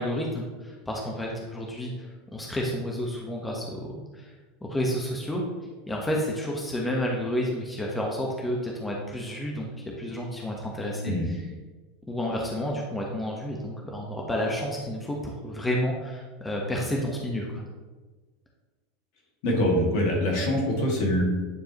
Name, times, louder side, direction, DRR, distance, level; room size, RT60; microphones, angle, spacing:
voice 1, 0.0-4.3 4.6-5.4 5.9-9.7 10.0-11.4 12.1-17.6, equal, 10° left, -1 dB, 1.2 m, -30 dB
voice 2, 19.4-21.2, left 1 dB, 60° left, -2 dB, 2.2 m, -24 dB
9.5 x 4.6 x 3.1 m, 1.3 s
hypercardioid pair, 85°, 0 cm